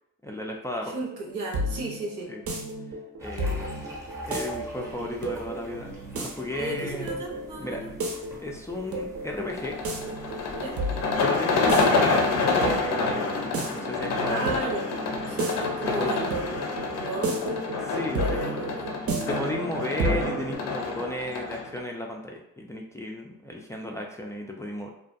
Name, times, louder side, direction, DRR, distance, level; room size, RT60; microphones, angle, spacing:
voice 1, 0.2-1.0 2.3-2.4 3.2-3.8 4.2-5.9 6.2-7.2 7.6-7.8 8.4-9.8 11.2-13.4 13.7-14.7 15.9-16.1 17.9-24.9, left 1 dB, 10° left, -1 dB, 0.3 m, -34 dB
voice 2, 0.9-2.3 6.5-7.9 10.5-10.8 14.3-14.9 15.3-17.8 18.2-18.9, right 2 dB, 85° right, -1 dB, 0.8 m, -35 dB
sound 1, 1.1-20.5, right 2 dB, 50° right, 0.6 m, -33 dB
sound 2, 3.2-11.3, equal, 10° right, 0.7 m, -44 dB
sound 3, 9.5-21.8, left 3 dB, 60° left, 0.5 m, -28 dB
2.4 x 2.2 x 2.5 m, 0.79 s
cardioid pair, 90°, 30 cm